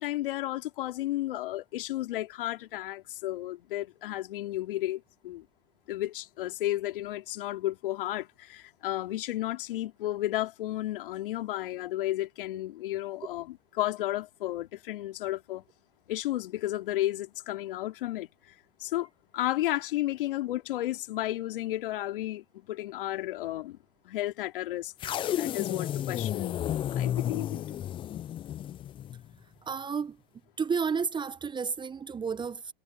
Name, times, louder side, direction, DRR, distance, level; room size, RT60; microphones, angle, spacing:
voice 1, 0.0-5.5 5.9-15.6 16.1-18.5 18.8-23.8 24.0-24.9 25.3-26.6 26.9-27.8, left 15 dB, 65° left, 2.6 m, -33 dB
sound 1, 25.0-29.3, left 11 dB, 20° left, 0.4 m, -32 dB
voice 2, 29.6-30.2 30.6-32.7, right 5 dB, 15° right, 1.0 m, -31 dB
hypercardioid pair, 105°, 29 cm